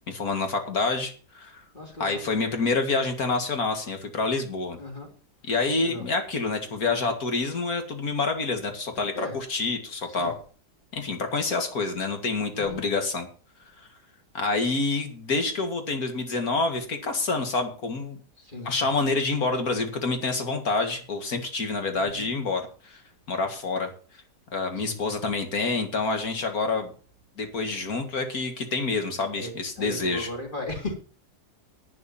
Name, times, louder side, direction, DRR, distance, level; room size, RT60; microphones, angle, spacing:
voice 1, 0.1-1.6 2.0-4.8 5.4-10.4 10.9-13.3 14.3-18.2 18.6-23.0 23.3-23.9 24.5-26.9 27.4-30.3, left 3 dB, 65° left, 2.5 m, -27 dB
voice 2, 1.7-2.2 4.8-5.1 5.8-6.0 9.1-9.4 10.2-10.3 12.5-12.8 18.4-18.9 21.9-22.3 24.7-25.0 29.3-30.9, left 1 dB, 30° left, 3.4 m, -36 dB
11.0 x 8.5 x 7.2 m
omnidirectional pair, 1.7 m